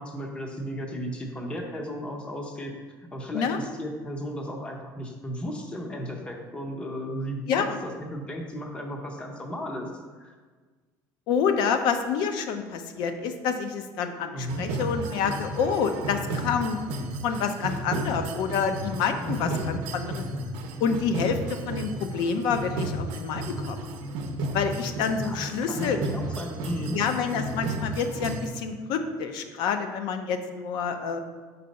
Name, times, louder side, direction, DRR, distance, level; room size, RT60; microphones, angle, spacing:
voice 1, 0.0-2.7 3.1-9.9 10.2-10.3 14.3-14.6 19.2-19.5 25.2-27.0, equal, 15° left, 2 dB, 0.6 m, -35 dB
voice 2, 11.3-16.8 17.2-20.2 20.8-23.8 24.5-26.0 26.9-31.2, left 6 dB, 60° left, 8 dB, 0.6 m, -28 dB
sound 1, 14.5-28.5, right 2 dB, 70° right, 0.7 m, -33 dB
5.6 x 4.1 x 5.1 m, 1.4 s
cardioid pair, 175°, 8 cm